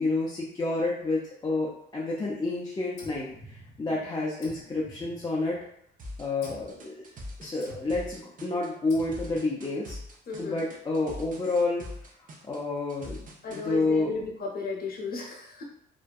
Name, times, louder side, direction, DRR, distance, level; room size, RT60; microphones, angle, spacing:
voice 1, 0.0-5.6 6.2-7.1 7.4-10.0 10.4-11.8 12.4-14.1, left 3 dB, 20° left, -5 dB, 0.4 m, -29 dB
sound 1, 3.0-4.0 4.4-5.7 6.4-6.8 7.6-8.2 8.9-9.5, equal, 90° left, 0.6 m, -49 dB
sound 2, 6.0-13.6, left 1 dB, 40° right, 0.6 m, -43 dB
voice 2, 10.3-10.6 13.4-15.6, left 4 dB, 50° left, -1 dB, 0.8 m, -34 dB
2.6 x 2.2 x 2.3 m, 0.71 s
cardioid pair, 90°, 20 cm